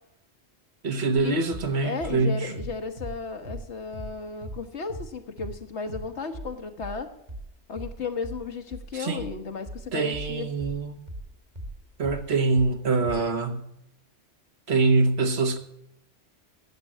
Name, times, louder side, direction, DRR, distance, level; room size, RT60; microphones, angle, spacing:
voice 1, 0.8-2.5 8.9-9.3 9.9-11.0 12.0-13.7 14.7-15.6, right 3 dB, 65° right, 1.4 m, -24 dB
sound 1, 1.5-1.7 2.0-4.2 4.4-4.6 4.9-5.1 5.4-5.6 5.9-6.1 6.3-11.8 12.0-12.7 13.0-13.2, right 1 dB, 40° right, 1.6 m, -39 dB
voice 2, 1.8-7.1 7.7-10.5, left 4 dB, 75° left, 1.5 m, -34 dB
12.0 x 7.5 x 7.3 m
omnidirectional pair, 1.2 m